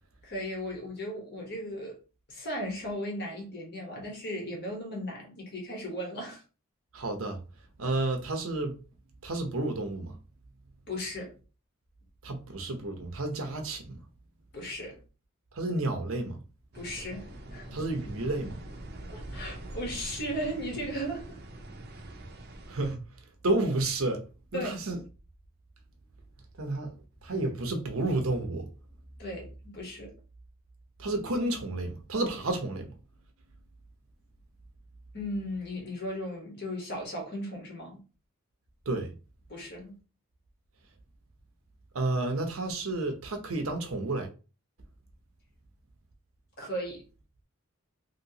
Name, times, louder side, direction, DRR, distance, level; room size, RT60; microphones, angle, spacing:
voice 1, 0.2-1.9 2.3-6.4 10.9-11.3 14.5-15.0 16.7-17.8 19.1-21.4 24.5-24.8 29.2-30.1 35.1-38.0 39.5-39.9 46.6-47.0, equal, 50° left, 1.2 m, -36 dB
voice 2, 6.9-7.4 7.8-8.8 9.2-10.1 12.2-14.0 15.5-16.4 17.7-18.6 22.7-23.0 23.4-24.2 24.5-25.0 26.6-26.9 27.2-28.7 31.0-32.9 38.9-39.1 41.9-44.3, right 2 dB, 85° right, 0.9 m, -31 dB
sound 1, 16.7-22.9, right 1 dB, 50° right, 0.7 m, -43 dB
3.0 x 2.9 x 2.8 m
head